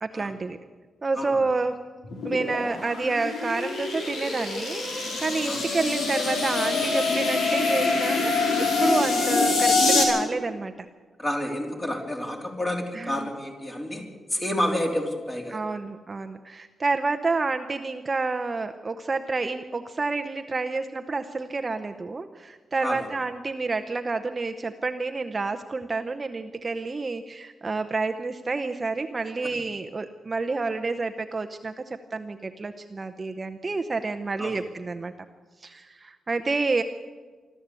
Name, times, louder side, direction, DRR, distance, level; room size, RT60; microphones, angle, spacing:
voice 1, 0.0-0.6 1.0-1.8 2.2-10.9 12.9-13.2 15.5-35.1 35.6-36.8, right 3 dB, 25° right, 7 dB, 0.8 m, -29 dB
sound 1, 2.0-10.0, left 3 dB, 80° left, 5.0 m, -25 dB
voice 2, 11.2-14.0 14.3-15.7 22.8-23.1 34.4-34.6, left 1 dB, 20° left, 2 dB, 3.3 m, -29 dB
25.0 x 13.0 x 8.3 m, 1.4 s
wide cardioid pair, 160°, 0 cm